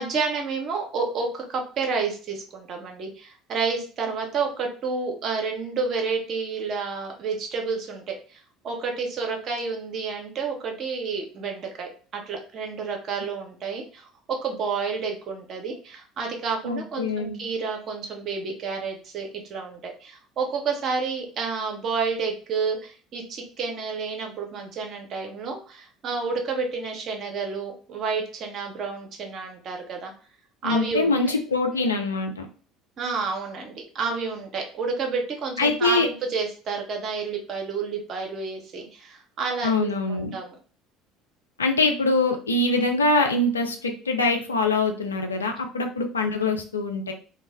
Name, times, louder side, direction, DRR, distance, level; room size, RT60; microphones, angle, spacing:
voice 1, 0.0-14.1 14.4-30.1 30.6-31.1 33.0-40.5, right 4 dB, 45° right, 2 dB, 0.7 m, -30 dB
voice 2, 16.6-17.4 30.6-32.5 35.6-36.1 39.6-40.3 41.6-47.1, left 2 dB, 80° left, 4 dB, 0.3 m, -24 dB
2.0 x 2.0 x 3.4 m, 0.38 s
figure-of-eight pair, 60°, 0 cm